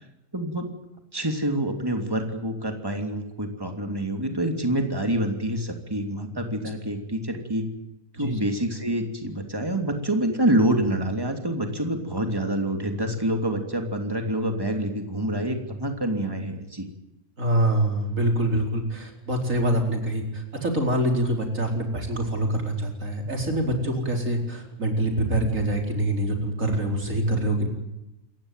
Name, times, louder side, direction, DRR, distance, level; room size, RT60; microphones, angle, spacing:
voice 1, 0.3-0.7 1.1-7.7 8.1-16.9, right 1 dB, 15° right, 5 dB, 3.1 m, -27 dB
voice 2, 17.4-27.7, right 1 dB, 70° right, 3 dB, 4.8 m, -25 dB
28.0 x 15.0 x 9.2 m, 0.92 s
omnidirectional pair, 1.4 m